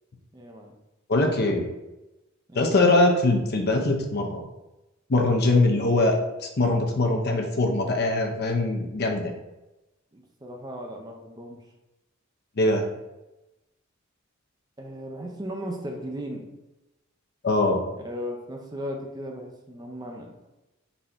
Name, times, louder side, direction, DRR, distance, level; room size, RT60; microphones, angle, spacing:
voice 1, 0.3-0.7 2.5-2.7 10.1-11.6 14.8-16.5 18.0-20.3, equal, 20° right, 1 dB, 0.5 m, -36 dB
voice 2, 1.1-1.7 2.5-4.4 5.1-6.1 6.6-9.3 12.6-12.9 17.4-17.8, left 2 dB, 50° left, 2 dB, 0.7 m, -22 dB
4.1 x 2.6 x 4.4 m, 0.99 s
head